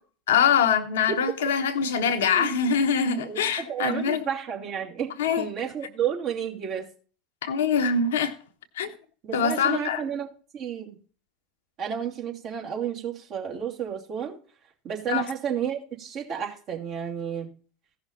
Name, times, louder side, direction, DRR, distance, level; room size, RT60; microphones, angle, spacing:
voice 1, 0.3-4.2 5.2-5.4 7.4-8.4 8.7-8.9 9.3-10.0 15.1-15.3, left 6 dB, 65° left, 1.0 m, -23 dB
voice 2, 2.2-2.6 3.2-6.9 9.2-11.0 11.8-14.4 14.8-17.5, right 8 dB, 45° right, 3.0 m, -31 dB
15.5 x 6.0 x 4.1 m
figure-of-eight pair, 75°, 0 cm